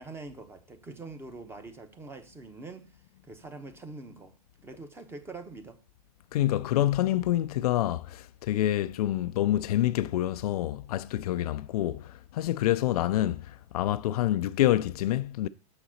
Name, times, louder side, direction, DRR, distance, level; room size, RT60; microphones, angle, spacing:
voice 1, 0.0-4.4 4.6-5.8, right 3 dB, 10° right, 0.9 m, -44 dB
voice 2, 6.3-13.4 13.7-15.5, left 13 dB, 70° left, 0.4 m, -27 dB
6.6 x 4.1 x 6.3 m
hypercardioid pair, 130°, 20 cm